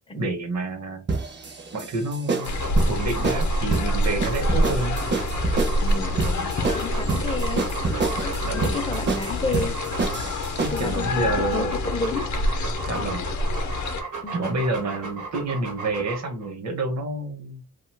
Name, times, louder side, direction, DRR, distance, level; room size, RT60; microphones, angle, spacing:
voice 1, 0.1-1.0 1.7-5.0 8.4-8.8 10.6-11.7 12.9-13.3 14.3-17.6, right 2 dB, 60° right, 5 dB, 0.9 m, -29 dB
sound 1, 1.1-11.0, right 3 dB, 40° right, 0.5 m, -28 dB
sound 2, 2.4-14.0, left 1 dB, 70° left, 0.6 m, -26 dB
Dog, 2.4-10.5 11.1-16.5, right 4 dB, 90° right, 1.0 m, -36 dB
voice 2, 5.8-6.5 6.7-7.7 8.2-9.8 10.7-12.3 14.2-14.6, left 3 dB, 20° left, 8 dB, 0.4 m, -31 dB
2.7 x 2.3 x 3.2 m, 0.31 s
wide cardioid pair, 125°, 30 cm